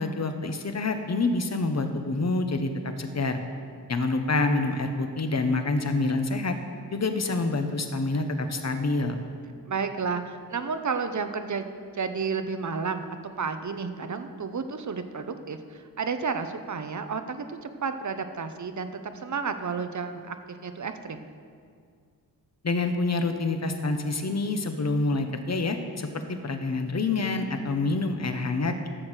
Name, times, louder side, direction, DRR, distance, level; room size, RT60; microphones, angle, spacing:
voice 1, 0.0-3.4 3.9-6.5 6.9-9.2 22.6-28.9, left 3 dB, 40° left, 7 dB, 1.2 m, -27 dB
voice 2, 9.7-11.7 11.9-13.1 13.4-21.2, right 5 dB, 45° right, 8 dB, 1.0 m, -31 dB
13.5 x 7.2 x 6.4 m, 2.1 s
cardioid pair, 70°, 39 cm